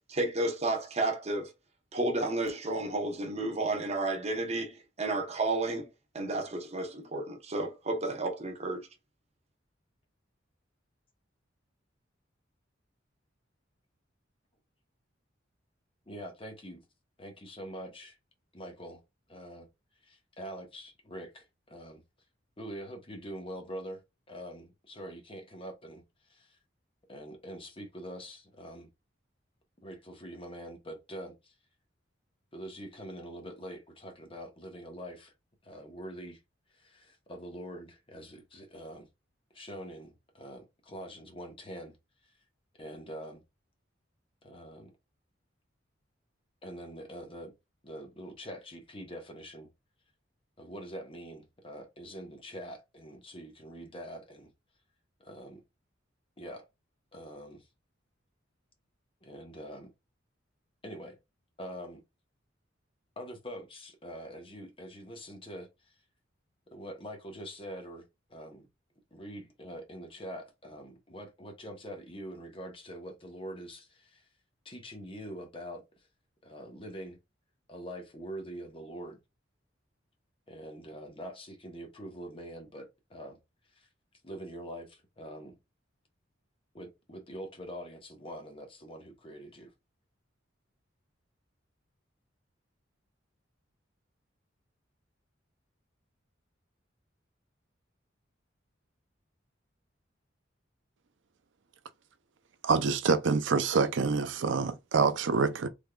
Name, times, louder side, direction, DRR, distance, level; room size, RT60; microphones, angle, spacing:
voice 1, 0.1-1.5 1.9-5.9 6.1-8.9, right 2 dB, 35° right, 0.9 m, -32 dB
voice 2, 16.1-16.8 17.2-18.2 18.5-19.0 19.3-19.7 20.0-22.0 22.6-24.0 24.3-26.0 26.3-26.6 27.1-28.9 29.8-31.5 32.5-35.3 35.6-36.4 36.7-39.1 39.5-41.9 42.8-43.4 44.4-44.9 46.6-47.5 47.8-49.7 50.6-54.5 55.2-55.6 56.4-56.6 57.1-57.7 59.2-59.9 60.8-61.2 61.6-62.0 63.2-65.9 66.7-68.7 69.1-74.3 74.6-76.1 76.4-77.2 77.7-79.2 80.5-83.4 83.7-83.9 84.2-85.6 86.7-89.7, equal, 30° left, 1.0 m, -44 dB
voice 3, 102.6-105.7, right 5 dB, 75° right, 0.5 m, -26 dB
3.5 x 3.5 x 2.3 m
head